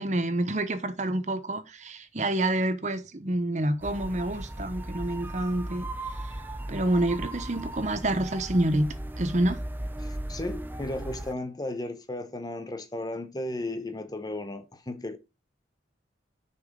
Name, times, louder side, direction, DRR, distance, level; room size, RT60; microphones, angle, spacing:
voice 1, 0.0-5.9 6.7-9.6, right 1 dB, 40° right, 0.9 m, -28 dB
sound 1, 3.8-11.3, right 1 dB, 10° right, 0.6 m, -37 dB
voice 2, 10.0-15.2, left 1 dB, 20° left, 0.9 m, -35 dB
6.7 x 5.9 x 5.1 m
head